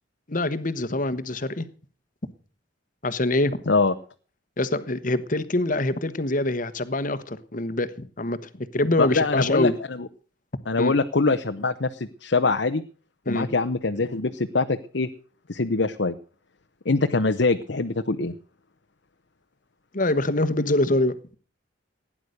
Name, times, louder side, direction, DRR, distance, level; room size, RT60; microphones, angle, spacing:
voice 1, 0.3-1.7 3.0-3.6 4.6-9.8 10.8-10.9 13.3-13.5 19.9-21.1, left 2 dB, 45° left, 1.2 m, -25 dB
voice 2, 9.0-10.1 10.7-12.8 13.3-15.1 15.5-16.1 16.8-18.3, left 3 dB, 65° left, 0.9 m, -23 dB
17.0 x 10.0 x 6.6 m
head